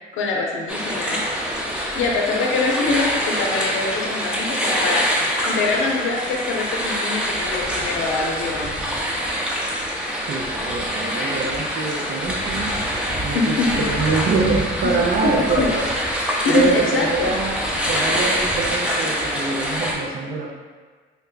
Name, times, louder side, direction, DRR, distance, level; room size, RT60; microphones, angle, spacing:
voice 1, 0.1-1.2 2.0-8.9 13.3-14.0 14.8-14.9 15.2-15.7 16.4-17.3, left 3 dB, 80° left, -1 dB, 0.5 m, -24 dB
sound 1, 0.7-19.9, equal, 5° right, 0.6 m, -25 dB
voice 2, 10.2-12.8 13.2-15.9 16.5-20.5, right 4 dB, 50° right, -1 dB, 0.4 m, -24 dB
3.3 x 2.1 x 3.8 m, 1.4 s
cardioid pair, 90°, 20 cm